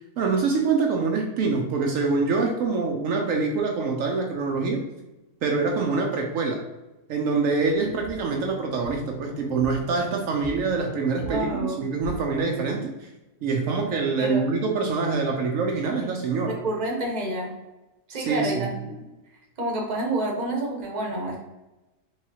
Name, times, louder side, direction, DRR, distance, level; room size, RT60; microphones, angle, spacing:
voice 1, 0.2-4.9 5.4-6.6 7.1-13.1 13.4-16.6 18.1-18.7, right 4 dB, 70° right, 1 dB, 1.0 m, -25 dB
sound 1, 7.6-12.7, equal, 15° left, 0.6 m, -42 dB
voice 2, 11.3-11.8 14.2-14.4 16.5-17.5 18.1-18.9 19.6-21.4, right 1 dB, 35° right, 0 dB, 1.0 m, -28 dB
4.8 x 3.4 x 2.8 m, 1.0 s
omnidirectional pair, 1.4 m